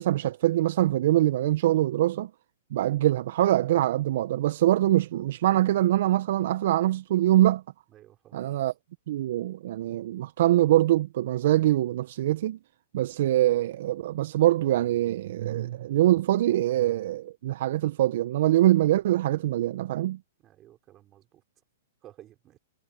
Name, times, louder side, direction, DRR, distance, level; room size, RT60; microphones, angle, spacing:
voice 1, 0.0-2.3 2.7-7.6 8.3-8.7 9.1-12.6 12.9-20.2, right 14 dB, 60° right, 1.2 m, -24 dB
voice 2, 7.9-8.3 20.4-21.4 22.0-22.6, right 13 dB, 30° right, 5.8 m, -53 dB
hypercardioid pair, 115°, 0 cm